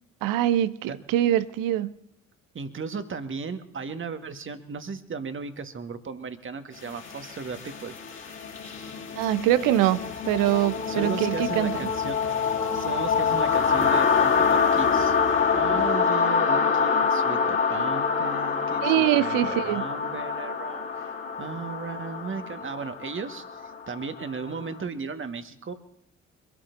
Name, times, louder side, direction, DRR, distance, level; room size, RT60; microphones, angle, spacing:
voice 1, 0.2-1.9 9.2-10.0 10.2-11.8 18.8-19.8, right 13 dB, 60° right, 16 dB, 0.8 m, -23 dB
voice 2, 2.5-8.0 10.9-12.2 12.7-15.2 15.6-25.7, right 5 dB, 30° right, 8 dB, 1.7 m, -36 dB
sound 1, 6.9-24.7, left 5 dB, 30° left, 2.9 m, -26 dB
25.5 x 12.5 x 2.7 m, 0.73 s
figure-of-eight pair, 45°, 38 cm